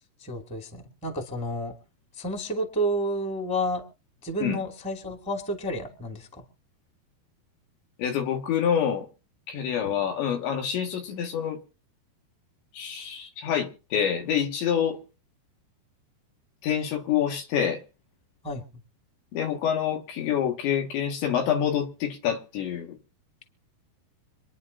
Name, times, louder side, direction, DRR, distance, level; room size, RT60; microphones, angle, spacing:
voice 1, 0.2-1.7 2.1-3.8 4.2-6.4 18.4-18.6, equal, ahead, 1.5 m, -30 dB
voice 2, 8.0-9.1 9.5-11.6 12.7-15.0 16.6-17.8 19.3-23.0, left 8 dB, 80° left, 4.3 m, -27 dB
26.5 x 10.5 x 2.7 m
omnidirectional pair, 5.1 m